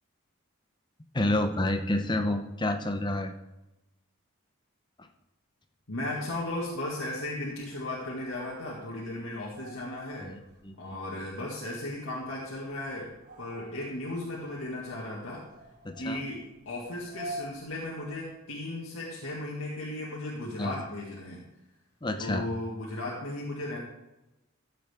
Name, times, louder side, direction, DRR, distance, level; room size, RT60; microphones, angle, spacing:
voice 1, 1.1-3.4 5.0-5.1 10.2-11.0 15.8-16.3 20.6-20.8 22.0-22.5, left 1 dB, 20° left, 6 dB, 0.8 m, -29 dB
voice 2, 5.9-10.4 10.8-13.1 13.4-15.4 16.0-21.4 22.2-23.8, left 1 dB, 70° left, -5 dB, 2.0 m, -36 dB
sound 1, 6.0-18.5, right 1 dB, 40° right, 1.2 m, -49 dB
13.5 x 7.8 x 3.6 m, 0.95 s
head